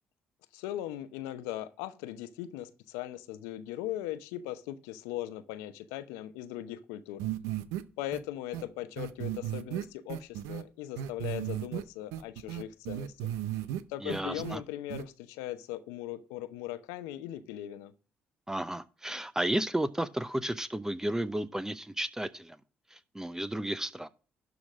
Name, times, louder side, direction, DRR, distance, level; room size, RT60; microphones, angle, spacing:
voice 1, 0.5-7.2 8.0-13.3 13.9-17.9, left 13 dB, 85° left, 0.8 m, -39 dB
sound 1, 7.2-7.8 8.1-8.2 8.5-8.6 9.0-10.6 11.0-11.8 12.1-13.8 14.1-14.6 14.9-15.0, right 12 dB, 80° right, 0.6 m, -35 dB
voice 2, 14.0-14.6 18.5-22.6 22.9-24.1, right 1 dB, 10° right, 0.7 m, -33 dB
12.0 x 4.0 x 6.2 m
hypercardioid pair, 55°, 5 cm